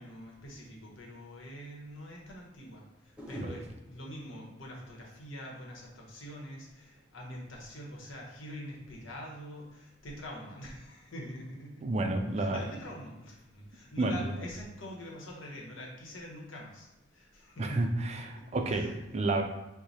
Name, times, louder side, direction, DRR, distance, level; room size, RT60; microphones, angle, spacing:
voice 1, 0.0-11.9 12.4-19.0, equal, 85° left, -1 dB, 1.1 m, -45 dB
sound 1, 3.2-6.3 6.6-7.0, equal, 5° right, 0.8 m, -51 dB
voice 2, 11.8-12.6 14.0-14.2 17.6-19.4, right 2 dB, 35° right, 4 dB, 0.4 m, -30 dB
4.7 x 2.2 x 4.1 m, 1.0 s
head